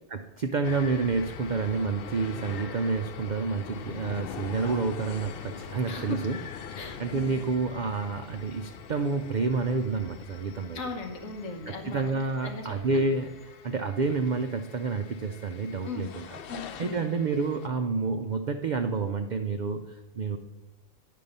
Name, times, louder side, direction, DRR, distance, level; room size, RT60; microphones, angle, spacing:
voice 1, 0.1-6.4 6.7-10.8 11.7-13.3 13.6-16.4 16.8-20.4, right 4 dB, 70° right, 7 dB, 0.4 m, -29 dB
sound 1, 0.6-17.7, left 7 dB, 60° left, 0.6 m, -43 dB
voice 2, 5.9-6.3 6.7-7.4 10.7-13.1 15.8-16.1 16.5-17.0, left 3 dB, 75° left, 3 dB, 1.6 m, -38 dB
sound 2, 7.0-13.3, left 2 dB, ahead, 2.4 m, -54 dB
10.0 x 5.5 x 5.3 m, 1.1 s
omnidirectional pair, 1.4 m